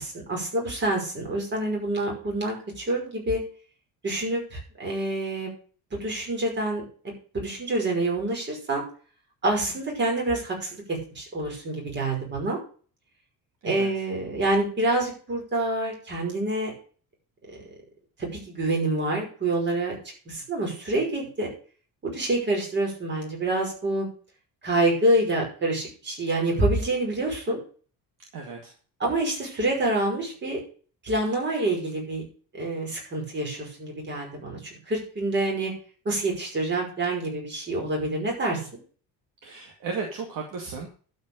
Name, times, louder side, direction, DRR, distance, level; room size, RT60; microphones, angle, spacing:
voice 1, 0.0-3.4 4.0-5.5 5.9-6.8 7.3-8.8 9.4-12.6 13.6-16.7 17.5-17.6 18.2-20.0 20.3-21.5 22.0-24.1 24.6-27.6 29.0-30.6 31.0-32.2 32.5-35.7 36.1-38.7, right 2 dB, 25° right, -1 dB, 5.5 m, -27 dB
voice 2, 28.3-28.7 39.4-40.9, right 4 dB, 50° right, 2 dB, 2.3 m, -34 dB
12.0 x 5.7 x 6.4 m, 0.40 s
cardioid pair, 175°, 41 cm